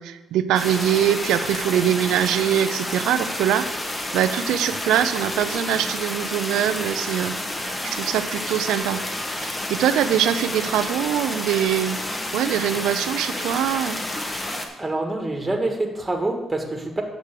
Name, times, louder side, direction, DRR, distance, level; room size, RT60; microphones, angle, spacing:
voice 1, 0.0-9.0 9.4-12.0 12.3-14.0, right 10 dB, 90° right, 12 dB, 0.5 m, -23 dB
sound 1, 0.5-14.7, left 1 dB, 20° left, 1.3 m, -30 dB
voice 2, 14.5-17.0, right 2 dB, 15° right, 3 dB, 1.6 m, -26 dB
8.2 x 6.1 x 6.7 m, 1.1 s
cardioid pair, 90°, 0 cm